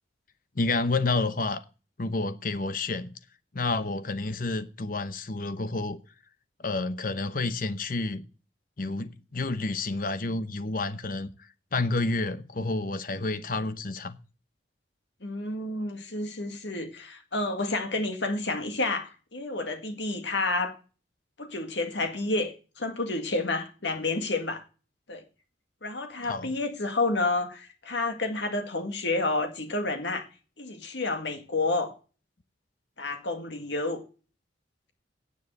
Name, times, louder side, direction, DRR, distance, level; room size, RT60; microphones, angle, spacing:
voice 1, 0.6-1.6 2.0-3.1 3.5-6.0 6.6-8.2 8.8-14.2 26.2-26.5, left 3 dB, 45° left, 0.8 m, -29 dB
voice 2, 15.2-20.8 21.4-24.6 25.1-25.2 25.8-30.3 30.6-31.9 33.0-34.0, left 2 dB, 70° left, 2.0 m, -30 dB
9.8 x 7.5 x 7.6 m
head